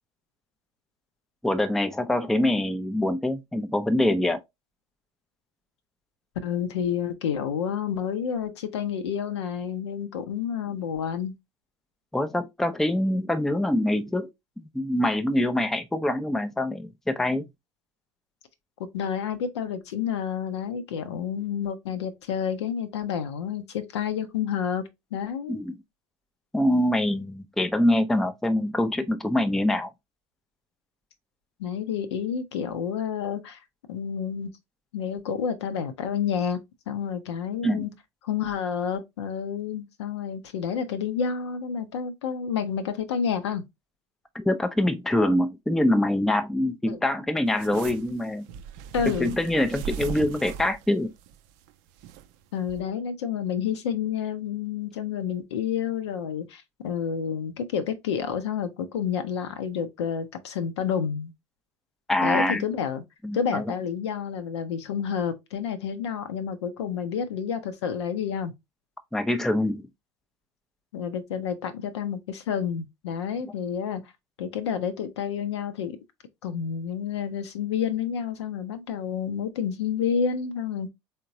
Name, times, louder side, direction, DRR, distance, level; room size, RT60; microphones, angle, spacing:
voice 1, 1.4-4.4 12.1-14.3 14.6-17.4 25.5-25.8 26.5-29.9 37.6-37.8 44.3-48.5 49.1-51.1 62.1-62.6 63.2-63.7 69.1-69.9, left 1 dB, ahead, 0.4 m, -24 dB
voice 2, 6.4-11.3 18.8-24.8 25.1-25.6 31.6-33.6 33.9-34.5 34.9-36.6 36.9-37.9 38.2-43.6 46.9-47.0 48.9-49.4 52.5-61.3 62.2-63.0 63.3-68.5 70.9-74.0 74.4-76.0 76.4-80.9, left 7 dB, 70° left, 0.7 m, -29 dB
sound 1, 47.5-52.3 52.7-52.8, right 8 dB, 50° right, 0.4 m, -38 dB
3.7 x 3.6 x 2.6 m
figure-of-eight pair, 70°, 15 cm